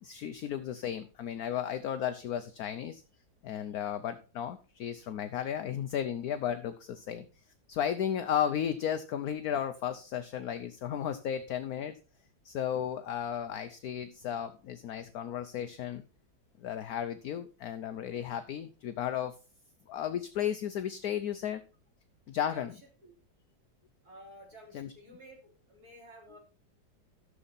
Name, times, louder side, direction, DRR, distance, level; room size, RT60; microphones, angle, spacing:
voice 1, 0.0-3.0 3.4-7.3 7.7-11.9 12.4-16.0 16.6-19.3 19.9-21.6 22.3-22.7 24.7-24.9, left 9 dB, 65° left, 9 dB, 1.0 m, -34 dB
voice 2, 22.5-23.1 24.0-26.4, equal, 50° right, 0 dB, 3.9 m, -53 dB
13.0 x 7.0 x 4.1 m, 0.34 s
omnidirectional pair, 2.1 m